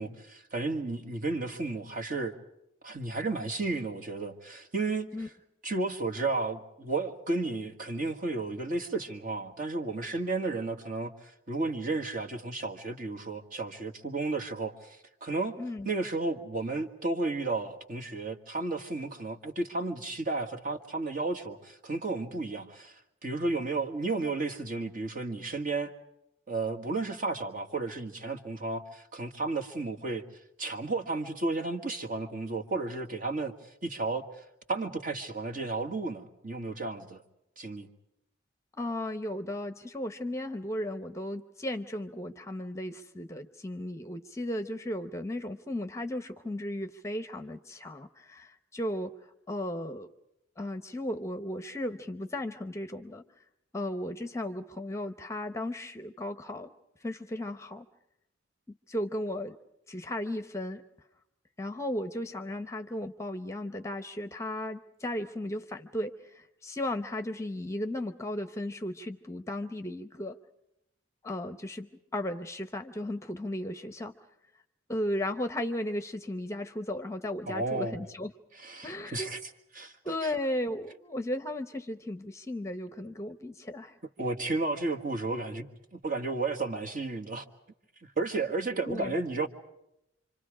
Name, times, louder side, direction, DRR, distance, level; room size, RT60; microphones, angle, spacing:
voice 1, 0.0-2.4 2.8-5.1 5.6-15.6 15.8-25.9 26.5-30.2 30.6-33.5 33.8-34.2 34.7-37.2 37.6-37.9 77.5-78.0 78.6-79.4 79.7-79.9 84.2-87.4 88.2-89.5, right 3 dB, 45° right, 1.8 m, -33 dB
voice 2, 15.6-15.9 38.7-49.1 49.5-50.1 50.6-53.2 53.7-56.7 57.0-57.9 58.7-59.6 59.9-60.8 61.6-70.4 71.2-74.1 74.9-78.3 78.8-79.3 80.0-84.0 88.9-89.1, left 1 dB, 15° left, 0.8 m, -35 dB
27.5 x 26.0 x 5.0 m
head